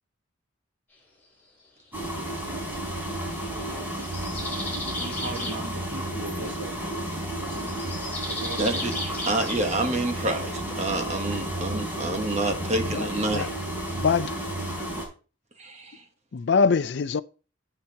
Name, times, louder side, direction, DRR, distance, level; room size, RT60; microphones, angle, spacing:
sound 1, 1.9-15.0, right 1 dB, 10° right, 3.9 m, -32 dB
sound 2, 3.2-5.6 7.6-9.6, left 2 dB, 10° left, 4.5 m, -35 dB
voice 1, 5.0-6.8 7.5-7.8 8.3-8.9, right 2 dB, 55° right, 1.2 m, -38 dB
voice 2, 8.6-9.0 9.3-13.5 15.6-16.0, right 2 dB, 30° right, 1.1 m, -28 dB
voice 3, 13.9-14.3 16.3-17.2, left 5 dB, 55° left, 0.4 m, -23 dB
14.5 x 5.8 x 2.8 m
head